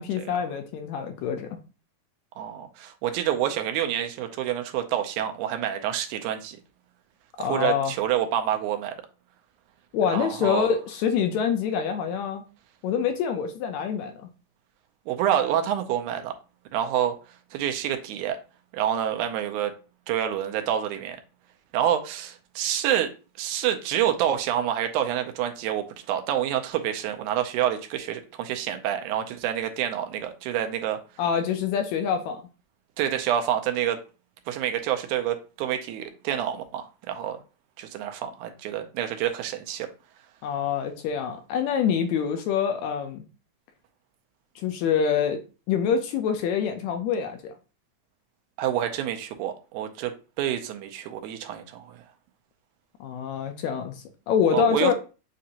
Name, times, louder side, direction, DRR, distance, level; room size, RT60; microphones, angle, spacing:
voice 1, 0.0-1.5 7.4-7.9 9.9-12.4 12.8-14.3 31.2-32.4 40.4-43.2 44.6-45.4 45.7-47.5 53.0-54.9, left 7 dB, 80° left, 1.7 m, -26 dB
voice 2, 2.4-6.6 7.4-9.0 10.1-10.7 15.1-16.3 16.7-17.2 17.5-18.4 18.7-19.7 20.1-21.2 21.7-23.1 23.4-31.0 33.0-34.0 34.5-37.4 37.8-39.9 48.6-52.0 54.5-54.9, right 10 dB, 80° right, 2.0 m, -27 dB
7.5 x 2.5 x 2.8 m
omnidirectional pair, 3.5 m